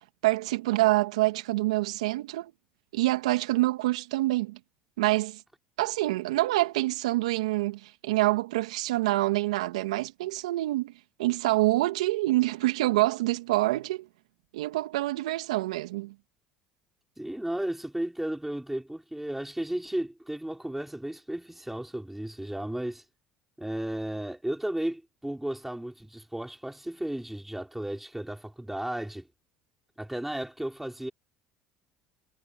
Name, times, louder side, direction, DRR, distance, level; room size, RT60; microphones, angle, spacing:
voice 1, 0.2-2.5 2.9-4.6 5.0-5.4 5.8-10.9 11.2-14.1 14.5-16.1, right 18 dB, 80° right, 2.3 m, -26 dB
voice 2, 17.2-23.0 23.6-29.3 30.0-31.1, right 1 dB, 5° right, 5.6 m, -34 dB
hypercardioid pair, 70°, 3 cm